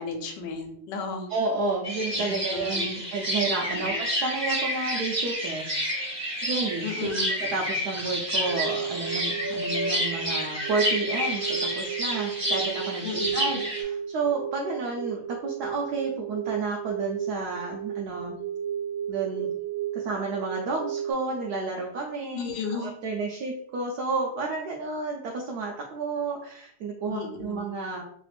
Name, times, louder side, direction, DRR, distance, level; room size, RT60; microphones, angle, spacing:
voice 1, 0.0-1.3 2.1-2.9 3.6-4.0 6.8-7.3 13.0-13.6 22.3-22.9 27.1-27.6, left 4 dB, 75° left, 4 dB, 1.3 m, -34 dB
voice 2, 1.3-6.2 6.4-7.1 7.4-18.4 19.1-19.5 19.9-28.0, right 3 dB, 70° right, -1 dB, 1.0 m, -31 dB
sound 1, 1.8-13.8, equal, 15° right, 0.5 m, -29 dB
sound 2, 8.4-21.1, right 9 dB, 35° left, 0.7 m, -34 dB
3.3 x 2.3 x 3.3 m, 0.66 s
omnidirectional pair, 2.0 m